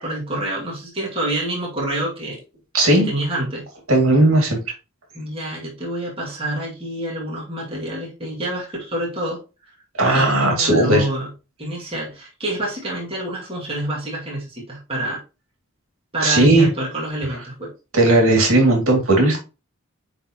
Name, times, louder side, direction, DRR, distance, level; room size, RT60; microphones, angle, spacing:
voice 1, 0.0-2.4 3.0-3.7 5.1-9.4 10.1-11.3 11.6-15.2 16.1-17.7, right 1 dB, 25° right, -4 dB, 2.2 m, -27 dB
voice 2, 2.7-3.1 3.9-4.6 10.0-11.1 16.2-16.7 17.9-19.4, right 2 dB, 75° right, 0 dB, 2.5 m, -16 dB
9.5 x 3.9 x 2.9 m, 0.29 s
head